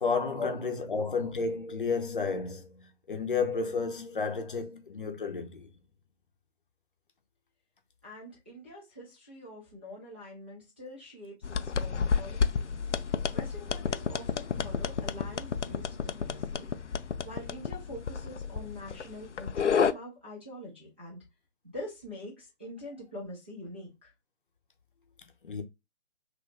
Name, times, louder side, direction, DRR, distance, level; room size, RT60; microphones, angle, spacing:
voice 1, 0.0-5.7 25.4-25.6, left 4 dB, 45° left, 0.8 m, -32 dB
voice 2, 8.0-12.7 13.3-16.7 17.2-21.2 21.6-24.1, left 1 dB, 10° right, 0.5 m, -44 dB
sound 1, 11.4-19.9, left 6 dB, 75° left, 0.5 m, -31 dB
3.1 x 2.6 x 3.3 m
figure-of-eight pair, 145°, 36 cm